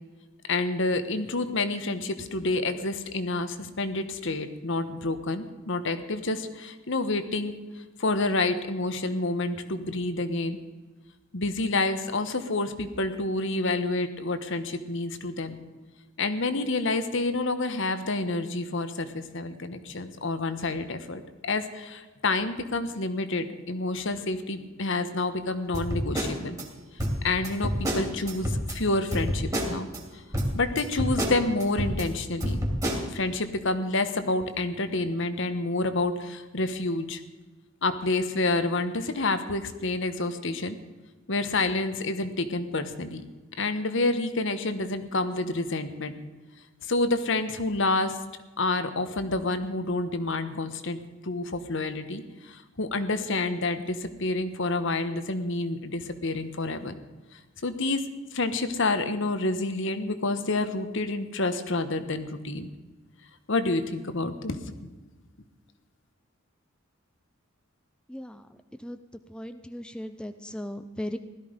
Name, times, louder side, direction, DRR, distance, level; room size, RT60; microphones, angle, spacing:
voice 1, 0.5-7.6 8.0-10.6 11.3-15.6 16.2-21.2 21.5-26.6 27.2-29.9 30.1-30.2 30.5-32.6 33.0-37.2 37.8-40.8 41.3-43.2 43.6-46.1 46.8-48.2 48.6-57.0 57.6-58.0 58.3-62.7 63.5-64.9, left 2 dB, 65° left, 10 dB, 1.2 m, -28 dB
sound 1, 25.7-26.6 27.0-28.8 29.1-30.0 30.3-32.1 32.4-33.0, equal, 15° right, 2.8 m, -28 dB
voice 2, 68.1-68.4 68.8-69.0 69.3-71.2, left 1 dB, 5° left, 9 dB, 0.5 m, -37 dB
16.5 x 13.0 x 5.2 m, 1.2 s
head